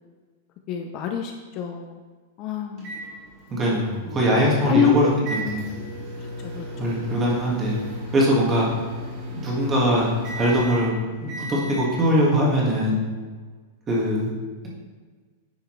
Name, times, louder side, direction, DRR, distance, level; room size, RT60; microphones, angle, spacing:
voice 1, 0.7-2.0 2.4-2.9 4.7-4.9 6.2-6.3 6.5-7.0, left 9 dB, 30° left, 4 dB, 0.4 m, -26 dB
sound 1, 2.8-11.9, equal, 35° right, 2.3 m, -36 dB
voice 2, 3.5-5.7 6.8-7.8 8.1-8.7 9.3-10.1 10.3-13.0 13.9-14.3, equal, 15° right, -4 dB, 1.7 m, -21 dB
9.9 x 5.7 x 3.2 m, 1.4 s
supercardioid pair, 165°, 0 cm